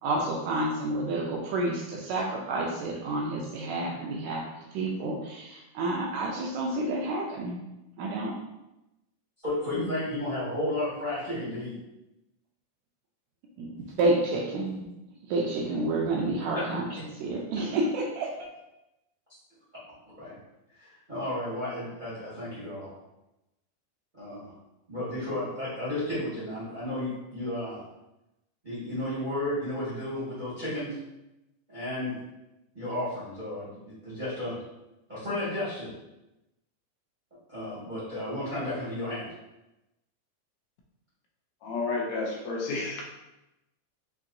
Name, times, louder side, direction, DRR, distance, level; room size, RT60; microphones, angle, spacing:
voice 1, 0.0-4.5 4.7-7.6 8.0-8.4 13.6-13.7 14.0-14.9 15.3-16.9 17.1-18.3, right 2 dB, 80° right, -1 dB, 1.7 m, -29 dB
voice 2, 9.4-11.7 16.5-16.7 20.2-20.4 21.1-22.9 24.1-24.5 24.9-27.8 28.6-31.0 31.7-32.1 32.7-34.5 35.1-35.9 37.5-39.3, left 1 dB, 45° right, -11 dB, 0.6 m, -33 dB
voice 3, 41.6-43.0, left 3 dB, 75° left, -1 dB, 1.7 m, -31 dB
5.7 x 2.7 x 2.5 m, 0.94 s
omnidirectional pair, 3.6 m